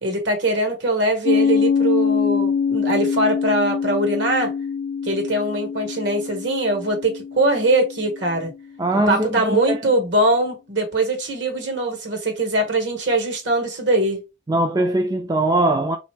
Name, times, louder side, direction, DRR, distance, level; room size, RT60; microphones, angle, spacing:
voice 1, 0.0-4.5 5.0-8.5 9.1-14.2, right 2 dB, 65° right, 1.4 m, -22 dB
Piano, 1.2-8.5, left 6 dB, 85° left, 0.4 m, -24 dB
voice 2, 8.8-9.8 14.5-16.0, right 1 dB, 20° right, 0.3 m, -21 dB
3.2 x 2.7 x 4.5 m
head